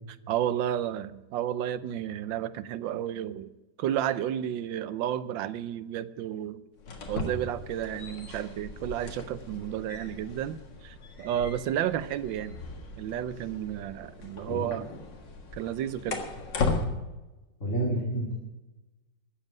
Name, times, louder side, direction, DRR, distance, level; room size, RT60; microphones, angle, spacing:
voice 1, 0.3-3.5 3.8-6.6 7.1-12.6 13.0-14.9 15.5-16.2, right 10 dB, 90° right, 14 dB, 1.4 m, -32 dB
sound 1, 6.8-16.9, left 3 dB, 75° left, 2.4 m, -37 dB
voice 2, 17.6-18.3, right 1 dB, 40° left, -3 dB, 2.7 m, -29 dB
13.5 x 7.4 x 9.4 m, 1.1 s
omnidirectional pair, 2.0 m